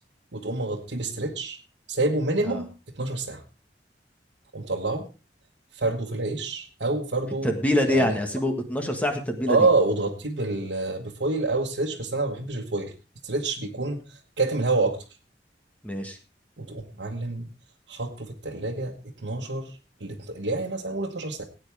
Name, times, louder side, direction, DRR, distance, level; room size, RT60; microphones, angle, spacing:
voice 1, 0.3-1.6 1.9-3.4 4.5-5.1 5.7-7.5 7.9-8.2 9.5-12.9 13.2-14.0 14.4-15.0 16.6-17.5 17.9-19.0 19.2-19.7 20.0-21.4, right 3 dB, 85° right, -1 dB, 1.3 m, -27 dB
voice 2, 7.4-9.6 15.8-16.2, left 1 dB, 10° left, 4 dB, 1.6 m, -25 dB
18.0 x 9.0 x 3.5 m, 0.31 s
head